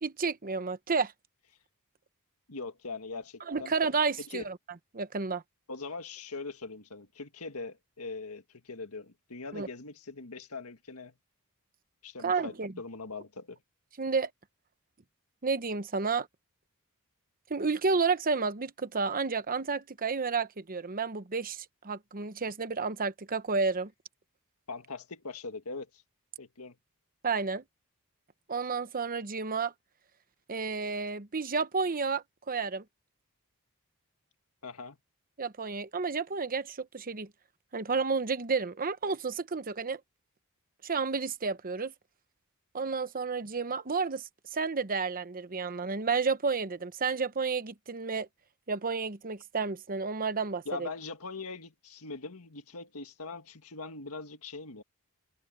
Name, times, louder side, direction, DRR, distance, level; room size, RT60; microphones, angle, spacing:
voice 1, 0.0-1.1 3.5-4.6 4.9-5.4 9.5-9.7 12.2-12.7 14.0-14.3 15.4-16.3 17.5-23.9 27.2-27.6 28.5-29.7 30.5-32.8 35.4-37.3 37.7-40.0 40.8-41.9 42.7-48.3 48.7-50.9, right 4 dB, 40° right, 0.9 m, -31 dB
voice 2, 2.5-3.7 4.3-4.5 5.7-11.1 12.0-13.6 24.7-26.0 26.4-26.8 34.6-35.0 50.7-54.8, left 3 dB, 75° left, 1.8 m, -41 dB
head